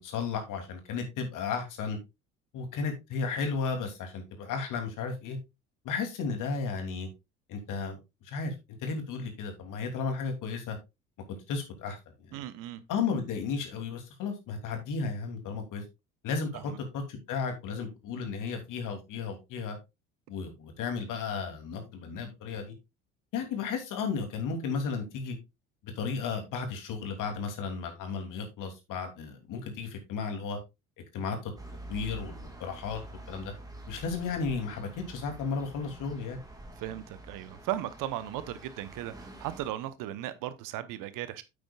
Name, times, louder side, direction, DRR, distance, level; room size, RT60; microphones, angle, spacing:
voice 1, 0.0-2.0 2.5-5.4 5.8-7.1 7.5-8.0 8.2-10.8 11.3-12.4 12.9-15.8 16.2-19.8 20.3-22.7 23.3-25.4 25.8-30.6 31.1-31.5 31.9-33.5 33.9-36.4, left 5 dB, 55° left, 3.1 m, -34 dB
voice 2, 12.3-12.8 16.5-16.8 36.8-41.4, right 13 dB, 55° right, 1.1 m, -36 dB
sound 1, 31.6-39.7, right 1 dB, 10° right, 2.8 m, -47 dB
9.0 x 8.6 x 2.4 m
figure-of-eight pair, 60°, 38 cm